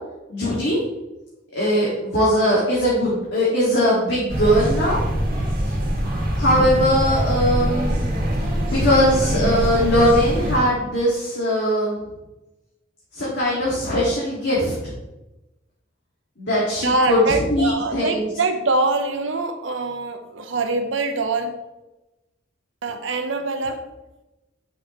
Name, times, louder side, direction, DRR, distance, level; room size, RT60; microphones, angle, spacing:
voice 1, 0.3-0.8 1.5-5.0 5.7-5.8 6.3-8.1 8.7-12.0 13.1-14.9 16.4-17.2 17.5-18.3, equal, 60° left, -7 dB, 2.0 m, -20 dB
sound 1, 4.3-10.6, equal, 45° right, 2.2 m, -23 dB
voice 2, 16.8-21.6 22.8-23.8, right 3 dB, 65° right, 7 dB, 0.9 m, -24 dB
8.6 x 6.0 x 3.1 m, 1.0 s
head